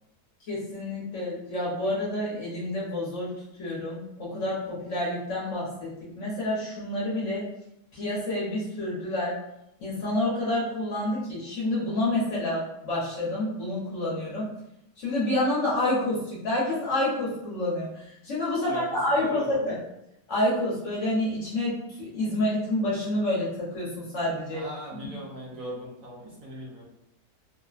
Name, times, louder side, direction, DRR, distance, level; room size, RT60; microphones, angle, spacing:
voice 1, 0.5-3.3 3.6-5.9 6.1-7.5 7.9-9.3 9.8-14.5 15.0-19.8 20.3-24.7, left 1 dB, 55° left, -7 dB, 1.0 m, -28 dB
voice 2, 18.6-19.8 24.5-26.8, equal, 65° right, -5 dB, 1.2 m, -40 dB
3.2 x 2.1 x 2.4 m, 0.83 s
omnidirectional pair, 1.7 m